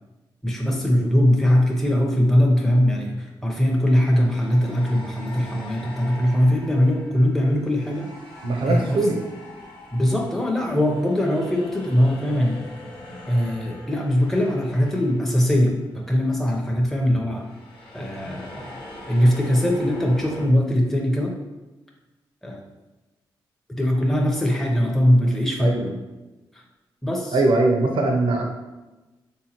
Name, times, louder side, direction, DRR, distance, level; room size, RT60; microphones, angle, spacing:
voice 1, 0.4-8.1 8.7-9.0 9.9-12.6 13.3-17.5 17.9-18.8 19.1-21.3 22.4-22.6 23.7-25.7 27.0-27.4, equal, 5° left, -1 dB, 0.6 m, -21 dB
sound 1, 1.1-1.3 3.8-16.2 16.4-16.6 17.3-20.5, left 1 dB, 65° left, 0.9 m, -43 dB
voice 2, 8.4-9.2 25.6-25.9 27.3-28.4, right 2 dB, 70° right, 2 dB, 0.6 m, -21 dB
3.4 x 2.8 x 2.9 m, 1.1 s
supercardioid pair, 50°, 9 cm